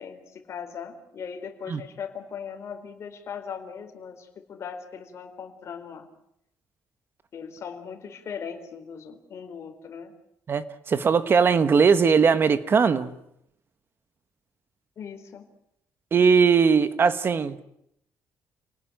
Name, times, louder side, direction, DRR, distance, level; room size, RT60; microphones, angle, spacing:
voice 1, 0.0-6.1 7.3-10.1 15.0-15.5 17.4-17.5, left 7 dB, 45° left, 4.3 m, -39 dB
voice 2, 10.5-13.1 16.1-17.6, right 5 dB, 35° right, 1.5 m, -20 dB
29.5 x 19.0 x 9.1 m
cardioid pair, 135°, 6 cm